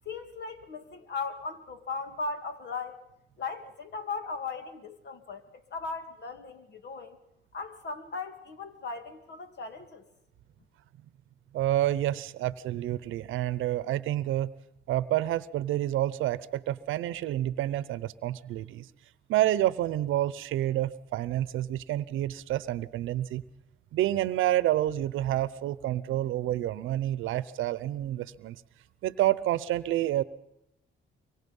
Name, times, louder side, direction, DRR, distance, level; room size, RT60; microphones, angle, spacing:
voice 1, 0.1-3.0 3.4-7.2 7.5-10.0, left 4 dB, 60° left, 7 dB, 2.6 m, -37 dB
voice 2, 11.5-14.5 14.9-18.9 19.3-23.4 23.9-28.6 29.0-30.2, right 13 dB, 85° right, 17 dB, 0.8 m, -28 dB
24.5 x 23.5 x 5.5 m, 0.83 s
cardioid pair, 90°, 20 cm